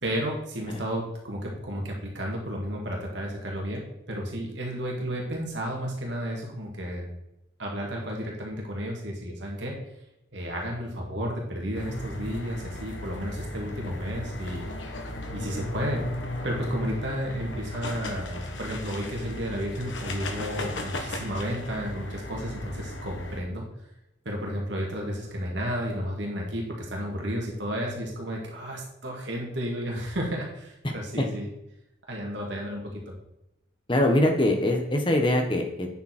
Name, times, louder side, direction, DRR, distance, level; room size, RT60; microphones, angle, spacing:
voice 1, 0.0-7.1 7.6-9.8 10.3-14.7 15.3-16.1 16.4-23.6 24.3-31.5 32.1-33.1, equal, 70° right, -1 dB, 2.2 m, -32 dB
sound 1, 11.7-23.4, left 1 dB, 75° left, 1.4 m, -36 dB
voice 2, 30.8-31.3 33.9-35.9, left 1 dB, 25° left, 3 dB, 1.4 m, -23 dB
9.3 x 7.3 x 4.5 m, 0.86 s
head